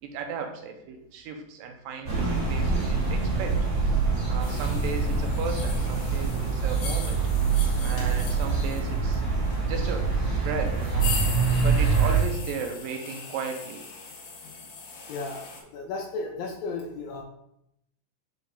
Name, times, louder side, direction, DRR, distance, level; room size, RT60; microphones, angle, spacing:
voice 1, 0.0-3.6 4.3-7.2 7.8-9.2 9.7-10.1 10.4-11.1 11.6-13.8, right 6 dB, 80° right, 4 dB, 2.5 m, -35 dB
sound 1, 2.1-12.2, right 4 dB, 40° right, 2.2 m, -25 dB
sound 2, 4.4-15.6, left 5 dB, 60° left, 2.2 m, -40 dB
voice 2, 15.1-17.2, left 3 dB, 80° left, 0 dB, 2.4 m, -34 dB
5.6 x 5.2 x 3.6 m, 0.77 s
omnidirectional pair, 4.0 m